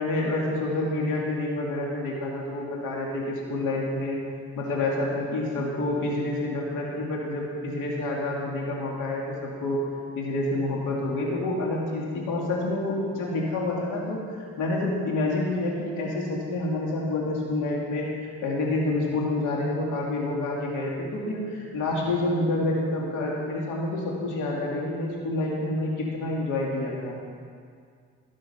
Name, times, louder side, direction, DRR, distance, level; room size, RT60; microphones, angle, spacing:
voice 1, 0.0-4.2 4.6-9.8 10.2-18.1 18.4-27.2, left 2 dB, 85° left, -2 dB, 2.3 m, -28 dB
15.5 x 6.9 x 5.5 m, 2.1 s
cardioid pair, 90°, 30 cm